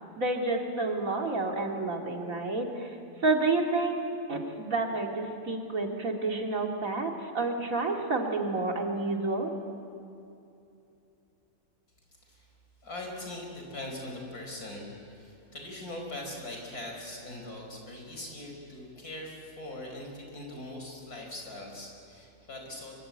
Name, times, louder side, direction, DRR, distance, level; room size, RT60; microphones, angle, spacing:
voice 1, 0.2-3.0 3.2-4.0 4.3-9.5, right 3 dB, 60° right, 1 dB, 2.8 m, -29 dB
voice 2, 12.8-22.9, left 1 dB, 70° left, 1 dB, 5.5 m, -41 dB
24.5 x 23.5 x 8.7 m, 2.7 s
omnidirectional pair, 1.6 m